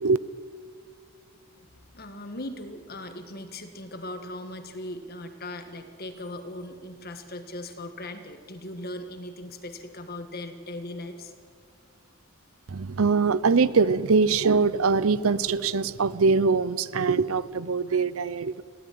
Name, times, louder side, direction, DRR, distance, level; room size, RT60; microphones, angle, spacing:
voice 1, 1.6-11.3, left 1 dB, 45° left, 8 dB, 1.7 m, -39 dB
voice 2, 12.7-18.6, right 4 dB, 70° right, 17 dB, 0.6 m, -23 dB
21.0 x 15.5 x 9.5 m, 2.2 s
head